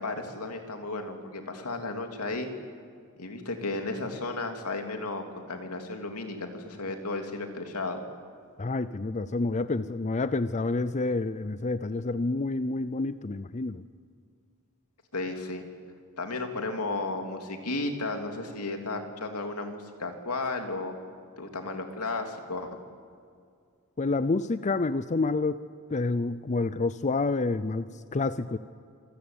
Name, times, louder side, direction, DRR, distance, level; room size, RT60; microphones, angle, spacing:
voice 1, 0.0-2.5 3.2-8.0 15.1-15.6 16.2-20.9 21.4-22.8, left 2 dB, 85° left, 5 dB, 2.9 m, -34 dB
voice 2, 8.6-13.8 24.0-25.6 25.9-28.6, left 3 dB, 30° left, 14 dB, 0.5 m, -28 dB
27.0 x 18.0 x 8.8 m, 2.3 s
head